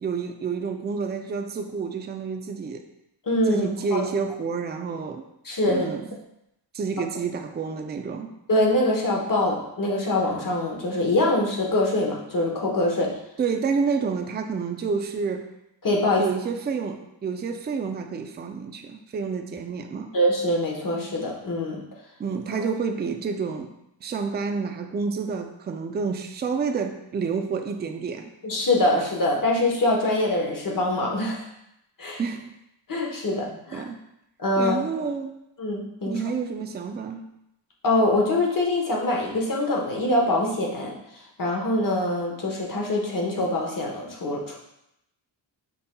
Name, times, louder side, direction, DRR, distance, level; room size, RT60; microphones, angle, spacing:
voice 1, 0.0-2.8 3.5-5.2 5.7-6.1 6.7-8.3 13.4-15.5 16.2-20.1 22.2-23.7 24.0-28.3 32.2-32.5 33.7-34.0 34.6-35.3 36.1-37.2, right 5 dB, 25° right, 5 dB, 0.3 m, -29 dB
voice 2, 3.3-4.0 5.4-5.9 8.5-13.1 15.8-16.2 20.1-21.8 22.5-22.7 28.4-31.4 32.0-32.2 32.9-33.8 34.4-35.1 35.6-36.2 37.8-40.9 41.4-44.6, left 1 dB, 45° left, -1 dB, 1.0 m, -24 dB
5.4 x 4.1 x 2.2 m, 0.83 s
wide cardioid pair, 105°, 46 cm